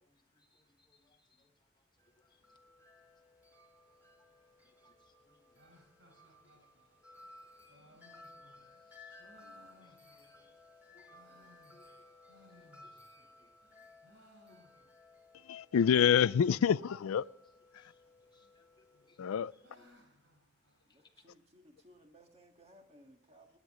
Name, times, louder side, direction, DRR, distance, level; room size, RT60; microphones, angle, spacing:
voice 1, 0.0-1.5 4.6-4.9 5.3-5.4 8.1-9.2 9.8-10.5 10.9-12.0 12.6-13.5 17.8-17.9 18.3-18.6 19.1-19.2, left 2 dB, 20° left, 1.2 m, -70 dB
Wind chime, 2.0-19.9, left 2 dB, 10° right, 2.8 m, -59 dB
sound 1, 5.6-10.6 10.9-13.3 13.6-15.2 15.4-15.5 15.7-15.8 16.5-16.9 17.9-18.5 18.9-21.3, left 1 dB, 65° right, 4.0 m, -65 dB
voice 2, 15.3-17.2 17.7-17.9 19.2-19.5, left 8 dB, 85° left, 0.4 m, -27 dB
voice 3, 20.9-23.6, right 1 dB, 30° right, 1.8 m, -61 dB
24.0 x 9.8 x 3.7 m
head